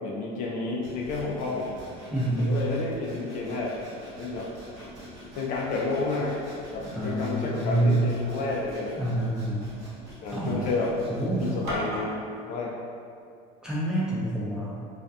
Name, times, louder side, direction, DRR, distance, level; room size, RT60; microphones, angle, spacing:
voice 1, 0.0-1.8 2.4-3.8 4.2-4.5 5.4-6.4 6.7-9.0 10.2-10.9 11.4-12.1 12.5-12.8, left 3 dB, 50° left, -3 dB, 0.4 m, -30 dB
Sawing, 0.8-12.2, equal, 60° right, 1.0 m, -43 dB
voice 2, 2.1-2.5 6.9-8.1 9.0-9.7 10.3-10.7 11.1-11.5 13.6-14.7, right 1 dB, 5° right, -8 dB, 0.5 m, -27 dB
2.4 x 2.2 x 2.6 m, 2.3 s
cardioid pair, 130°, 17 cm